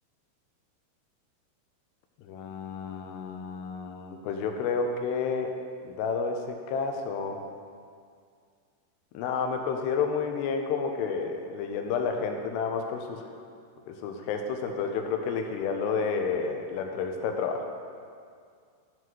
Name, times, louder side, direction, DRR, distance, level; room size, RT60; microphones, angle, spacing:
voice 1, 2.2-5.6 5.8-6.4 6.7-7.4 9.1-13.2 13.9-17.7, left 5 dB, 85° left, 4 dB, 2.7 m, -30 dB
13.0 x 7.5 x 3.1 m, 2.2 s
omnidirectional pair, 4.9 m